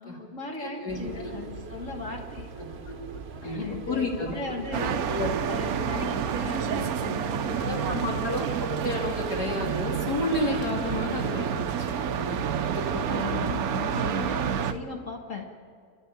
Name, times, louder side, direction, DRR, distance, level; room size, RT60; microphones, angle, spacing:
voice 1, 0.0-2.5 3.4-5.2 5.5-8.1 12.8-15.5, left 4 dB, 55° left, 0 dB, 2.0 m, -37 dB
voice 2, 0.6-1.3 2.6-5.3 7.6-13.5, left 2 dB, 85° left, -2 dB, 3.1 m, -32 dB
sound 1, 0.9-14.8, right 4 dB, 45° right, 1.1 m, -40 dB
sound 2, 4.7-14.7, right 9 dB, 70° right, 1.2 m, -29 dB
sound 3, 7.2-12.3, right 8 dB, 90° right, 2.1 m, -40 dB
29.5 x 12.0 x 9.0 m, 2.2 s
omnidirectional pair, 1.7 m